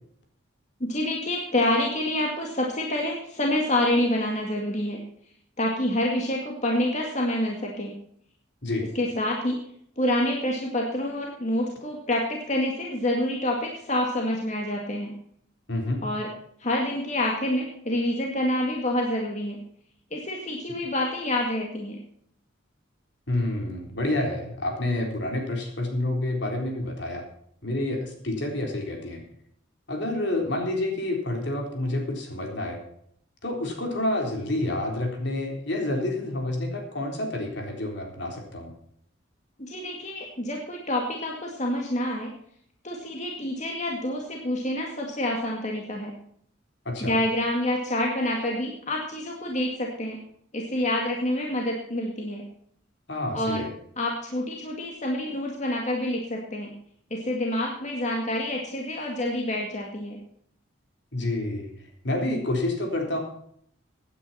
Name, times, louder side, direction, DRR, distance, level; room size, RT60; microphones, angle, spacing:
voice 1, 0.8-5.0 5.6-7.9 8.9-9.6 10.0-15.1 16.0-16.3 16.6-19.6 20.1-22.0 39.7-42.3 42.8-46.1 47.0-50.2 50.5-52.4 53.3-53.6 54.0-56.7 57.1-60.2, left 1 dB, 40° left, 0 dB, 2.1 m, -27 dB
voice 2, 15.7-16.0 23.3-27.2 27.6-29.2 29.9-32.8 33.4-38.7 46.9-47.1 53.1-53.7 61.1-61.7 62.0-63.2, left 1 dB, 60° left, 2 dB, 3.8 m, -28 dB
16.5 x 9.9 x 4.3 m, 0.68 s
head